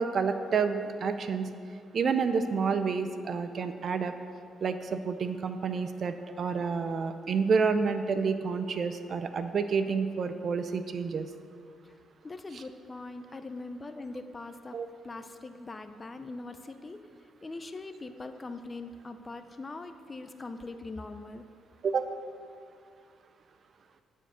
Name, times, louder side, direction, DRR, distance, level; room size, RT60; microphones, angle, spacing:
voice 1, 0.0-1.5 1.9-4.1 4.6-11.3 12.5-12.6 14.7-14.9 21.8-22.1, right 5 dB, 50° right, 9 dB, 0.6 m, -29 dB
voice 2, 12.2-14.8 15.0-17.0 17.4-21.4, left 2 dB, 25° left, 9 dB, 0.5 m, -41 dB
9.7 x 4.6 x 6.9 m, 2.3 s
cardioid pair, 90°, 0 cm